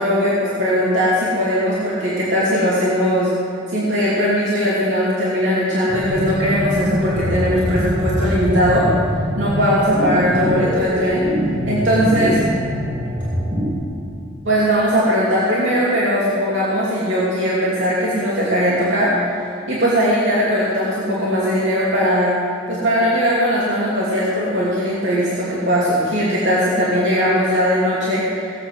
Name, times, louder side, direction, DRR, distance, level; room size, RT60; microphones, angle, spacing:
voice 1, 0.0-3.3 3.7-8.9 9.4-11.2 11.7-12.4 14.4-19.4 19.7-22.3 22.7-28.5, equal, 70° right, -8 dB, 2.9 m, -19 dB
sound 1, 5.9-13.7, equal, 30° right, 2.5 m, -23 dB
18.0 x 7.8 x 6.3 m, 2.5 s
head